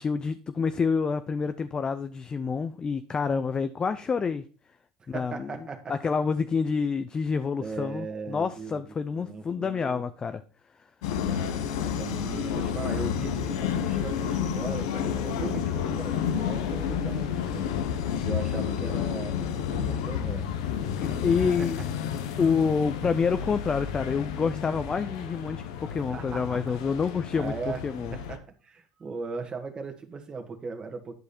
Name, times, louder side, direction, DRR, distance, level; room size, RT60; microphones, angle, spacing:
voice 1, 0.0-4.4 5.1-5.6 5.9-10.4 21.0-21.8 22.4-27.5 27.8-28.2, left 5 dB, 30° left, 0.5 m, -28 dB
voice 2, 5.0-5.9 7.6-10.0 11.3-17.7 18.1-20.5 21.6-21.7 26.1-26.6 27.3-27.8 28.1-31.2, right 4 dB, 30° right, 1.8 m, -38 dB
sound 1, 11.0-28.4, left 8 dB, 80° left, 0.9 m, -30 dB
11.0 x 4.9 x 4.3 m
hypercardioid pair, 80°, 3 cm